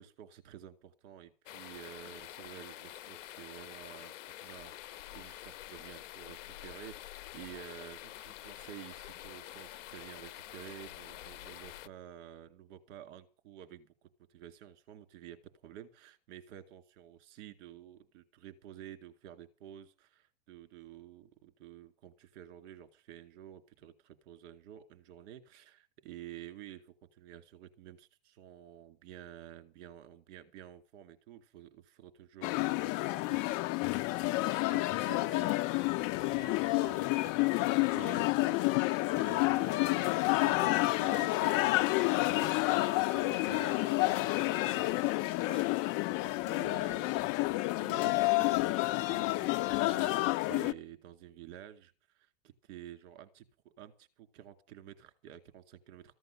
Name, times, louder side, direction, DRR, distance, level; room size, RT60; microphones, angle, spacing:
voice 1, 0.0-15.4 15.6-33.6 34.4-38.8 39.1-47.3 47.8-56.1, right 11 dB, 55° right, 9 dB, 2.5 m, -51 dB
sound 1, 1.5-11.9, left 14 dB, 70° left, 0.8 m, -47 dB
sound 2, 32.4-50.7, left 20 dB, 40° left, 0.7 m, -29 dB
15.0 x 11.0 x 6.4 m, 0.36 s
hypercardioid pair, 125°, 39 cm